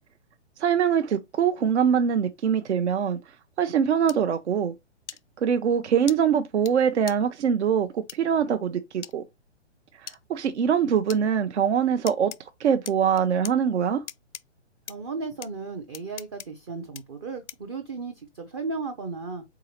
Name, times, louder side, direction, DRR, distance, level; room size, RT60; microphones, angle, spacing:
voice 1, 0.6-3.2 3.6-4.7 5.4-9.2 10.0-12.3 12.6-14.0, right 7 dB, 70° right, 0.7 m, -23 dB
sound 1, 4.1-4.2 5.1-5.2 6.1-6.2 6.7-6.8 7.1-7.2 8.1-8.2 9.0-9.1 10.1-10.2 11.1-11.2 12.1-12.4 12.8-13.5 14.1-14.4 14.9-15.0 15.4-15.5 15.9-16.5 16.9-17.0 17.5-17.7, left 10 dB, 75° left, 0.5 m, -39 dB
voice 2, 14.9-19.4, right 4 dB, 25° right, 0.5 m, -35 dB
4.7 x 3.9 x 2.9 m
hypercardioid pair, 140°, 36 cm